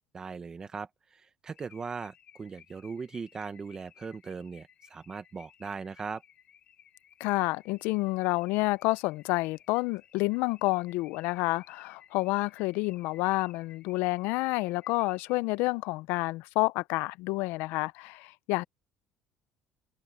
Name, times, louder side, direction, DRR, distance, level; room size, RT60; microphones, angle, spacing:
voice 1, 0.1-6.2, right 5 dB, 20° right, 1.0 m, -39 dB
Car / Alarm, 1.5-15.6, left 9 dB, 40° left, 3.6 m, -58 dB
voice 2, 7.2-18.6, left 22 dB, 80° left, 0.4 m, -29 dB
cardioid pair, 170°, 3 cm